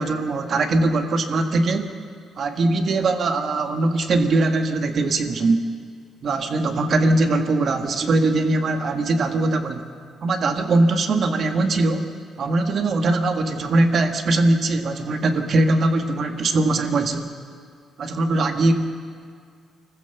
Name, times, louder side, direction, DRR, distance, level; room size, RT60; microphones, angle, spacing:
voice 1, 0.0-1.8 2.4-5.6 6.2-9.8 10.2-12.1 12.4-17.3 18.0-18.8, right 2 dB, 55° right, 6 dB, 1.7 m, -21 dB
25.0 x 15.0 x 7.0 m, 2.1 s
cardioid pair, 90°, 0 cm